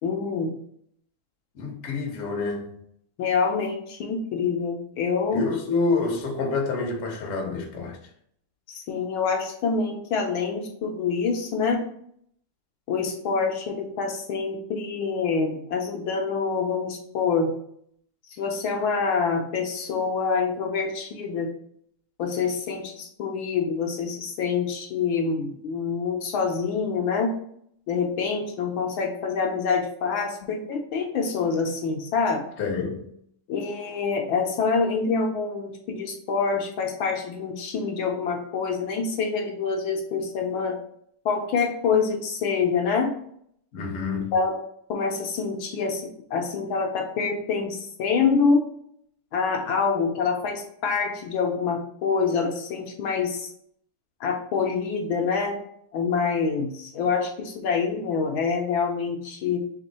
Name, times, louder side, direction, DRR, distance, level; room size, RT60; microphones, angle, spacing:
voice 1, 0.0-0.5 3.2-5.4 8.7-11.9 12.9-17.5 18.4-21.5 22.2-27.3 27.9-32.4 33.5-40.8 41.2-43.1 44.3-44.6 44.9-48.7 49.3-53.5 54.2-55.6 55.9-59.6, left 5 dB, 75° left, 1.3 m, -26 dB
voice 2, 1.5-2.8 5.3-8.0 32.6-33.0 43.7-44.4, left 4 dB, 55° left, 0.9 m, -27 dB
3.6 x 3.3 x 4.1 m
omnidirectional pair, 2.4 m